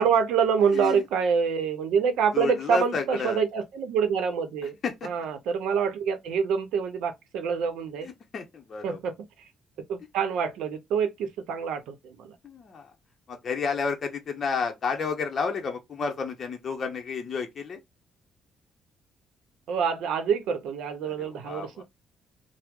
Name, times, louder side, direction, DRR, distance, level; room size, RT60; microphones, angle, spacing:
voice 1, 0.0-4.8 5.0-8.1 8.8-9.1 9.9-12.4 19.7-21.8, right 6 dB, 85° right, 0.6 m, -26 dB
voice 2, 0.7-1.0 2.3-3.4 4.8-5.1 8.0-9.0 12.4-12.9 13.3-17.8 21.0-21.8, left 5 dB, 45° left, 0.7 m, -31 dB
2.9 x 2.0 x 3.5 m
cardioid pair, 90°, 0 cm